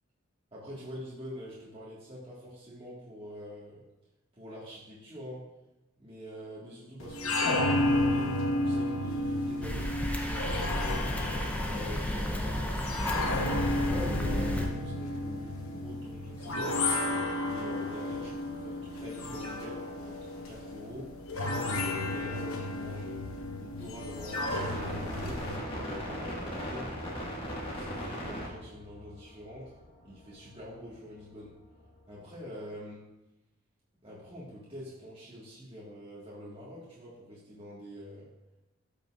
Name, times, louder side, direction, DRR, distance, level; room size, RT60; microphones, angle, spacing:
voice 1, 0.5-3.8 4.3-5.4 6.0-11.1 11.6-17.0 17.4-21.1 21.6-23.3 23.6-25.4 25.7-27.3 27.6-29.7 30.0-31.5 32.1-33.0 34.0-38.3, equal, 25° right, -8 dB, 1.6 m, -45 dB
sound 1, 7.0-25.6, left 2 dB, 75° left, 1.0 m, -32 dB
sound 2, 9.6-14.7, left 1 dB, 5° left, 0.6 m, -32 dB
sound 3, 24.0-30.6 30.9-31.0, equal, 25° left, 1.6 m, -38 dB
12.5 x 5.3 x 2.4 m, 0.94 s
head